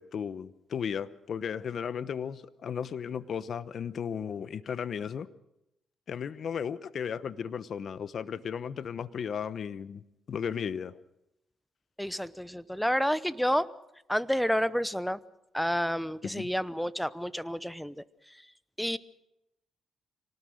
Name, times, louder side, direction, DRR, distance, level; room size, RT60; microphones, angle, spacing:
voice 1, 0.0-5.3 6.1-10.0 10.3-11.0 16.2-16.5, left 7 dB, 55° left, 15 dB, 1.0 m, -35 dB
voice 2, 12.0-13.7 14.1-15.2 15.5-18.0 18.8-19.0, equal, ahead, 16 dB, 0.9 m, -29 dB
25.5 x 18.5 x 6.5 m, 0.86 s
cardioid pair, 90°, 0 cm